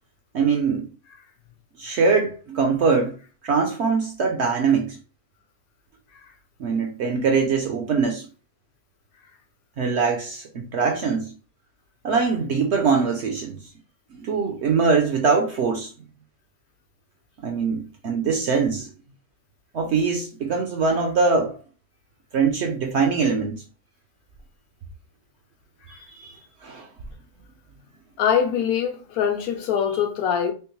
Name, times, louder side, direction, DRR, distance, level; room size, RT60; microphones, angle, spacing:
voice 1, 0.3-0.9 1.8-3.2 3.4-5.0 6.6-8.3 9.8-11.3 12.0-13.6 14.1-15.9 17.4-18.9 19.7-21.6 22.3-23.6 25.9-26.9, right 5 dB, 65° right, 0.7 m, -22 dB
voice 2, 28.2-30.5, left 8 dB, 75° left, 1.1 m, -23 dB
3.5 x 3.0 x 3.0 m
omnidirectional pair, 1.6 m